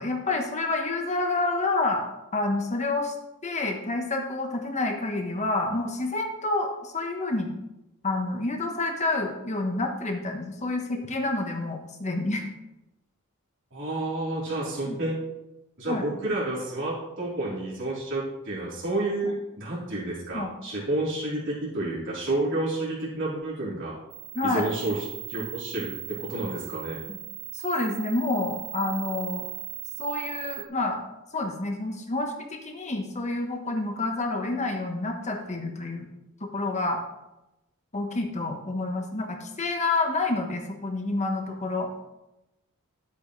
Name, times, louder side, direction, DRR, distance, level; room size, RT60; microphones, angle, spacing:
voice 1, 0.0-2.1 2.3-3.1 3.4-7.5 8.0-12.5 14.9-15.0 15.9-16.0 20.3-20.5 24.3-24.7 27.1-27.2 27.5-29.5 30.0-31.0 31.3-36.1 36.4-37.0 37.9-41.9, left 2 dB, 30° left, 2 dB, 1.2 m, -28 dB
voice 2, 13.7-15.1 15.8-24.0 24.4-25.9 26.2-27.0, right 2 dB, 60° right, -8 dB, 3.7 m, -30 dB
sound 1, 24.1-30.7, right 18 dB, 25° right, 0.9 m, -39 dB
11.5 x 8.4 x 3.2 m, 0.94 s
head